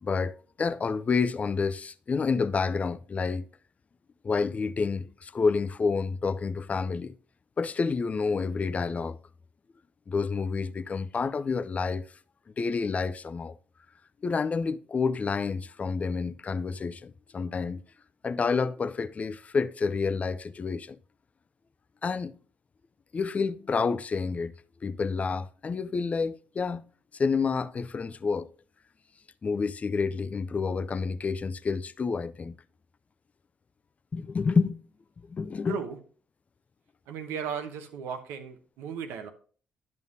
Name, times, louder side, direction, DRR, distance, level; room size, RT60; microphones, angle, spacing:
voice 1, 0.0-3.5 4.2-7.2 7.6-9.2 10.1-12.1 12.6-13.6 14.2-17.8 18.2-21.0 22.0-22.4 23.1-24.5 24.8-26.9 27.1-28.5 29.4-32.6 34.1-34.8 35.3-35.8, left 5 dB, 35° left, 0.4 m, -29 dB
voice 2, 35.7-36.0 37.1-39.3, right 7 dB, 80° right, 0.9 m, -36 dB
10.5 x 5.4 x 2.7 m
hypercardioid pair, 55°, 4 cm